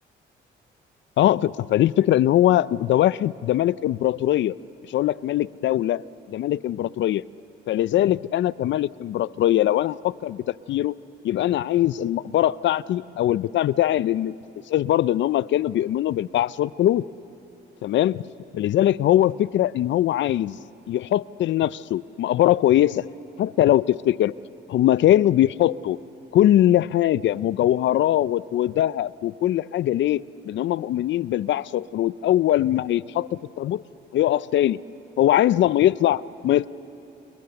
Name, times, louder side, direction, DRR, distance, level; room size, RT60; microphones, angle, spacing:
voice 1, 1.2-4.5 4.9-6.0 6.3-7.2 7.7-10.9 11.2-14.3 14.7-17.0 17.8-18.2 18.5-20.6 20.9-23.1 23.4-24.3 24.7-26.0 26.3-33.3 33.6-33.8 34.1-34.8 35.2-36.7, left 13 dB, 70° left, 19 dB, 0.5 m, -21 dB
29.0 x 29.0 x 7.0 m, 2.9 s
cardioid pair, 90°, 20 cm